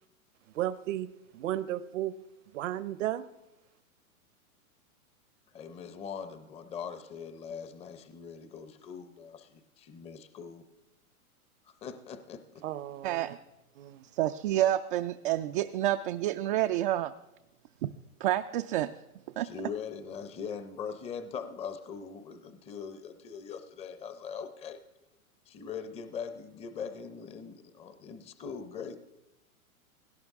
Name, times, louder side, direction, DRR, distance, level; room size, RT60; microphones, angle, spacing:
voice 1, 0.5-1.1 1.3-2.1 2.5-3.2 12.6-13.4 13.7-14.0, right 13 dB, 60° right, 16 dB, 0.9 m, -34 dB
voice 2, 5.5-10.6 11.7-12.4 19.4-24.8 25.5-29.0, left 6 dB, 15° left, 10 dB, 0.6 m, -41 dB
voice 3, 13.0-13.4 14.1-17.1 17.8-17.9 18.2-18.9 19.4-19.5, right 13 dB, 40° right, 7 dB, 0.4 m, -28 dB
17.5 x 17.0 x 3.6 m, 0.96 s
hypercardioid pair, 130°, 43 cm